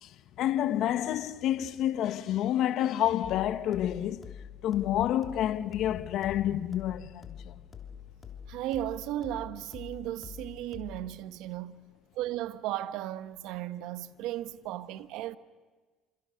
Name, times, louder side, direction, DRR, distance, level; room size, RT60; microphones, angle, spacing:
voice 1, 0.0-4.3 4.6-7.6, left 11 dB, 60° left, 1.1 m, -29 dB
sound 1, 3.2-11.2, left 8 dB, 35° left, 3.2 m, -46 dB
voice 2, 8.5-11.8 12.1-15.4, right 13 dB, 70° right, 1.2 m, -35 dB
28.0 x 27.0 x 6.4 m
supercardioid pair, 75°, 0 cm